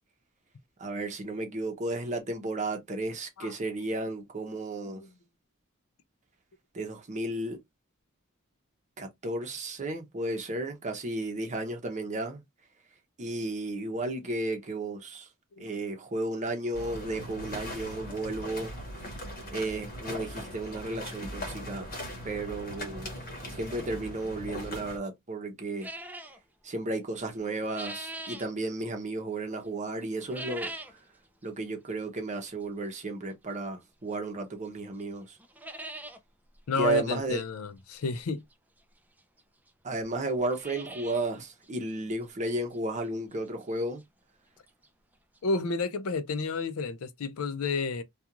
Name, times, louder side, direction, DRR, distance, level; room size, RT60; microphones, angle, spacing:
voice 1, 0.8-5.0 6.7-7.6 9.0-12.4 13.2-15.3 15.6-18.7 19.5-21.9 22.2-23.1 23.5-25.9 26.6-30.7 31.4-35.4 36.8-37.4 39.8-44.0, right 2 dB, 35° right, 0.7 m, -33 dB
sound 1, 16.7-25.0, equal, 45° left, 1.0 m, -40 dB
sound 2, 25.8-26.4 27.3-28.5 30.2-31.0 31.4-31.5 32.3-32.4 34.1-34.2 34.7-34.8 35.0-35.1 35.4-36.2 36.6-36.7 36.9-37.0 38.5-38.6 39.4-39.5 39.7-39.8 40.3-41.3 41.6-41.7 42.2-42.3 42.7-42.8 44.6-44.7 44.8-44.9 45.4-45.5, right 2 dB, 10° right, 0.4 m, -41 dB
voice 2, 36.7-38.4 45.4-48.0, left 4 dB, 75° left, 0.5 m, -31 dB
2.4 x 2.4 x 2.8 m
head